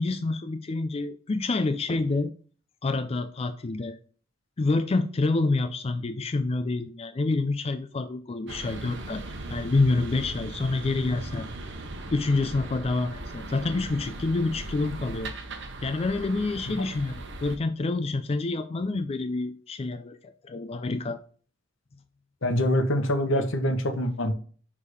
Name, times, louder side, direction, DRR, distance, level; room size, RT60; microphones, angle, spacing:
voice 1, 0.0-2.3 2.8-4.0 4.6-11.5 12.1-15.3 15.8-21.2, left 3 dB, 30° left, 0.4 m, -27 dB
sound 1, 8.5-17.6, right 2 dB, 65° right, 1.0 m, -38 dB
voice 2, 22.4-24.3, left 1 dB, 80° left, 1.1 m, -25 dB
6.4 x 3.6 x 4.9 m
head